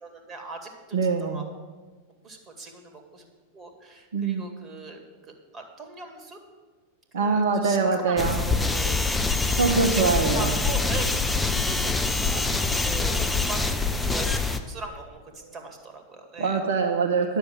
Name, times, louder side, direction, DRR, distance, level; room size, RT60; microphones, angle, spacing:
voice 1, 0.0-1.4 2.2-3.3 3.5-5.0 5.5-6.4 7.2-7.8 8.0-9.4 9.8-9.9 10.2-12.0 12.3-16.6, right 2 dB, 20° right, 4 dB, 2.1 m, -40 dB
voice 2, 0.9-1.4 4.1-4.5 7.1-8.4 9.5-10.5 16.4-17.4, right 4 dB, 60° right, 2 dB, 0.9 m, -23 dB
sound 1, 8.2-14.6, left 3 dB, 10° left, 0.7 m, -25 dB
10.0 x 6.8 x 7.6 m, 1.4 s
figure-of-eight pair, 90°, 0 cm